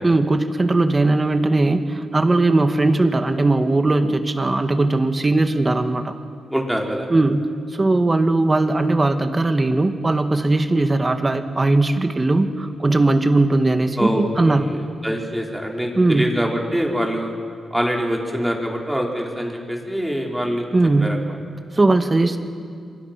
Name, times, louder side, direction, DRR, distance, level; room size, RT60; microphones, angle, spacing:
voice 1, 0.0-6.2 7.1-14.7 16.0-16.3 20.7-21.1 21.7-22.4, right 2 dB, 30° right, 7 dB, 2.0 m, -19 dB
voice 2, 6.5-7.1 14.0-14.8 15.0-17.3 17.7-20.6 21.0-21.4, equal, 5° right, -1 dB, 4.7 m, -24 dB
27.5 x 24.5 x 6.2 m, 2.2 s
cardioid pair, 75°, 0 cm